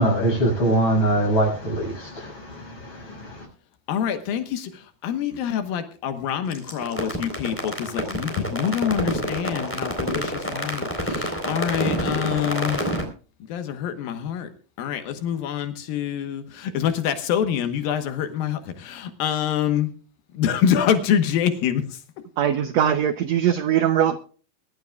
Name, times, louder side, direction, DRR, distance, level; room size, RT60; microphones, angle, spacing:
voice 1, 0.0-3.5, right 1 dB, 35° left, 7.2 m, -23 dB
voice 2, 3.9-13.0 13.5-14.5 14.8-19.9 20.3-22.0, left 9 dB, 85° left, 3.0 m, -26 dB
sound 1, 6.5-13.0, equal, 5° left, 3.4 m, -27 dB
voice 3, 22.4-24.2, right 9 dB, 80° right, 1.5 m, -21 dB
23.5 x 12.0 x 2.3 m
omnidirectional pair, 4.1 m